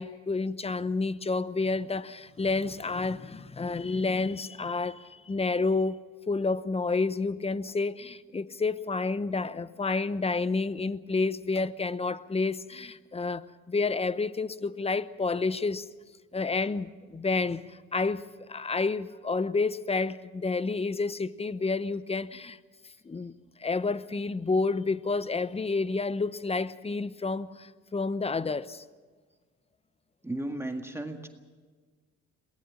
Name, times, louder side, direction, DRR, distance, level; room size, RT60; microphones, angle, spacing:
voice 1, 0.0-6.0 6.3-15.9 16.3-17.6 17.9-18.2 18.5-22.6 23.1-23.3 23.6-28.8, left 3 dB, 20° left, 0.8 m, -29 dB
voice 2, 30.2-31.3, right 1 dB, 10° right, 1.8 m, -34 dB
22.5 x 19.0 x 7.3 m
cardioid pair, 90°, 30 cm